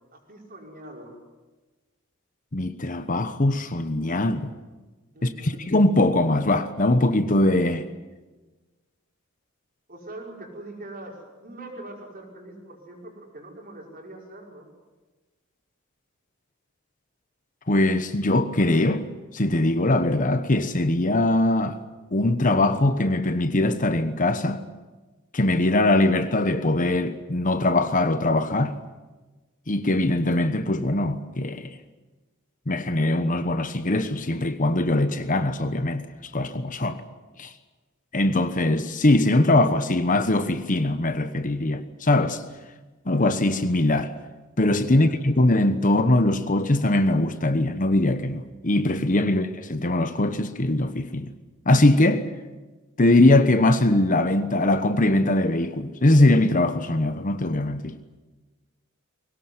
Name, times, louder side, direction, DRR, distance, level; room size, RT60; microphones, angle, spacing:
voice 1, 0.1-1.2 5.1-5.6 9.9-14.7 45.0-45.1, right 1 dB, 45° right, 5.6 m, -42 dB
voice 2, 2.5-4.5 5.2-7.9 17.7-19.1 19.3-21.8 22.1-24.7 25.3-28.8 29.7-31.8 32.7-36.1 36.3-37.0 37.4-37.5 38.1-42.4 43.1-44.1 44.6-51.3 51.7-52.3 53.0-58.0, left 2 dB, 40° left, 1.1 m, -21 dB
21.5 x 18.5 x 9.6 m
head